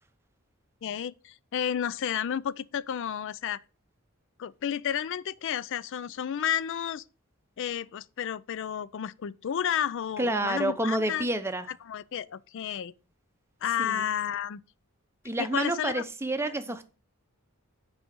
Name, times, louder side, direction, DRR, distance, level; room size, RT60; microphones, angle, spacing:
voice 1, 0.8-3.6 4.4-7.0 7.6-11.3 11.8-12.9 13.6-14.6 15.4-16.0, left 9 dB, 60° left, 0.4 m, -31 dB
voice 2, 10.2-11.7 13.8-14.0 15.2-16.9, right 1 dB, 10° right, 0.7 m, -29 dB
6.1 x 4.9 x 6.7 m
head